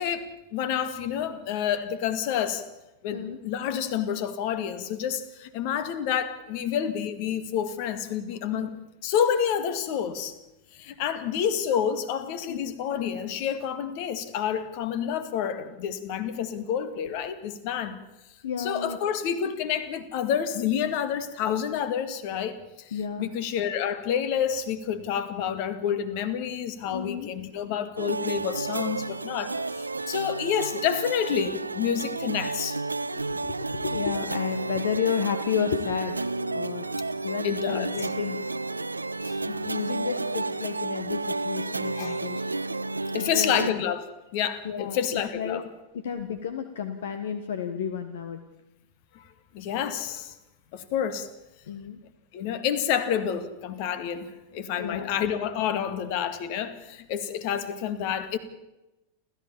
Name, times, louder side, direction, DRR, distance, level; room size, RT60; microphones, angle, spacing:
voice 1, 0.0-2.6 3.0-8.7 9.0-10.3 10.7-18.0 18.6-32.8 36.9-37.0 37.4-37.9 39.2-39.7 42.0-42.2 43.1-44.0 44.3-45.6 49.1-49.2 49.5-50.3 50.7-51.3 52.3-58.4, left 8 dB, 45° left, 13 dB, 2.1 m, -29 dB
voice 2, 18.4-19.0 22.9-23.3 26.8-27.3 33.1-36.8 37.2-38.4 39.4-42.5 43.3-43.7 44.6-45.7 45.9-48.4 51.7-52.0 54.8-55.1, left 7 dB, 60° left, 10 dB, 1.4 m, -32 dB
sound 1, 28.0-43.7, right 3 dB, 80° right, 0.6 m, -31 dB
29.5 x 14.0 x 7.2 m, 0.98 s
figure-of-eight pair, 90°, 0 cm